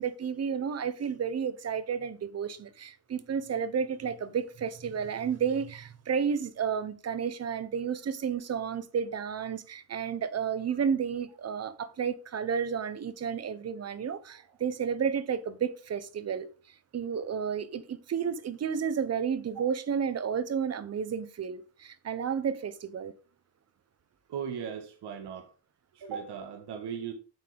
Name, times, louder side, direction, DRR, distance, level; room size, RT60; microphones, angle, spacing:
voice 1, 0.0-16.5 16.9-23.1, right 7 dB, 35° right, 1.0 m, -31 dB
voice 2, 24.3-25.5 25.9-27.1, right 7 dB, 55° right, 1.9 m, -38 dB
9.1 x 7.4 x 3.5 m
cardioid pair, 135°, 46 cm